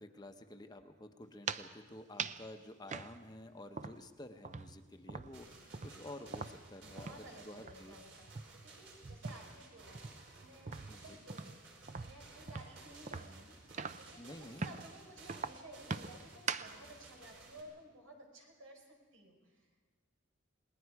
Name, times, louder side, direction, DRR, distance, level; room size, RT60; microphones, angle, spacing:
voice 1, 0.0-8.0 10.9-11.2 14.2-14.7, left 1 dB, 20° left, 6 dB, 0.8 m, -51 dB
sound 1, 1.3-1.7 2.2-2.5 2.9-4.2 4.4-7.3 7.6-7.8 8.2-9.6 9.9-14.2 14.6-14.9 15.3-16.8, right 5 dB, 35° right, 0.5 m, -43 dB
sound 2, 5.3-17.6, right 3 dB, 65° right, 4.6 m, -57 dB
voice 2, 6.8-11.5 11.9-19.7, right 1 dB, 90° right, 2 dB, 4.9 m, -56 dB
29.0 x 19.5 x 4.7 m, 1.4 s
head